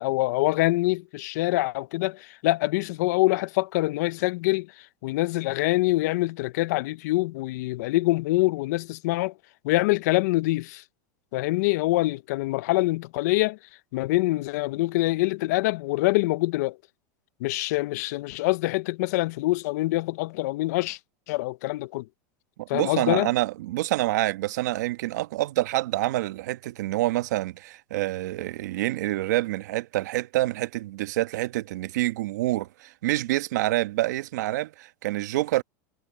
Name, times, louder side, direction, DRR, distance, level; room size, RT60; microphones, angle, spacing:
voice 1, 0.0-4.7 5.0-9.3 9.6-10.8 11.3-13.6 13.9-16.8 17.4-21.0 21.3-22.1 22.7-23.3, left 20 dB, 70° left, 0.7 m, -25 dB
voice 2, 22.6-35.6, right 16 dB, 75° right, 1.3 m, -27 dB
supercardioid pair, 120°, 9 cm